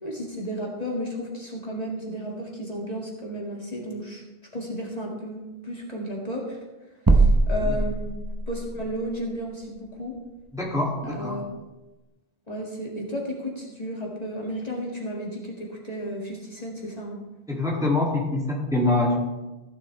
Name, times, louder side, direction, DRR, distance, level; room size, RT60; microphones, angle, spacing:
voice 1, 0.0-4.2 4.5-6.6 7.1-8.1 8.5-10.2 11.0-11.4 12.5-17.2, equal, 40° left, -3 dB, 2.1 m, -33 dB
sound 1, 7.1-8.7, right 3 dB, 20° right, 0.9 m, -20 dB
voice 2, 10.5-11.4 17.5-19.2, left 2 dB, 5° right, -4 dB, 2.3 m, -24 dB
15.5 x 11.0 x 3.3 m, 1.1 s
omnidirectional pair, 1.1 m